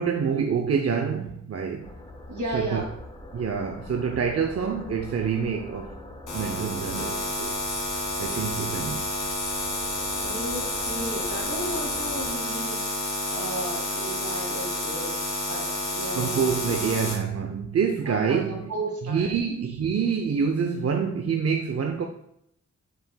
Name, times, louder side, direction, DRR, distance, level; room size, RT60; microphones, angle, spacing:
voice 1, 0.0-1.9 2.5-2.8 3.3-6.0 6.3-7.5 8.2-9.1 16.1-18.6 19.1-22.1, right 6 dB, 55° right, 0.6 m, -26 dB
sound 1, 1.8-12.4, left 1 dB, 20° left, 0.8 m, -43 dB
voice 2, 2.3-2.9 10.2-15.2 15.4-16.7 18.1-19.3, right 1 dB, 75° right, 1.9 m, -34 dB
sound 2, 6.3-17.1, left 1 dB, 85° left, 2.1 m, -30 dB
7.5 x 6.0 x 2.2 m
wide cardioid pair, 120°, 30 cm